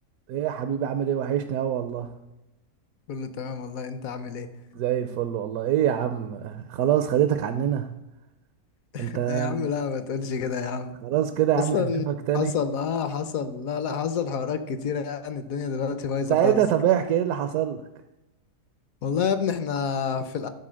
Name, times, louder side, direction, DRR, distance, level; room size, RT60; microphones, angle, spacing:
voice 1, 0.3-2.1 4.7-7.9 9.0-9.7 11.0-12.5 16.3-17.8, right 10 dB, 70° right, 9 dB, 1.0 m, -25 dB
voice 2, 3.1-4.5 8.9-10.9 11.7-12.0 12.3-16.6 19.0-20.5, left 6 dB, 65° left, 11 dB, 1.0 m, -28 dB
11.0 x 4.4 x 6.2 m, 0.99 s
omnidirectional pair, 1.8 m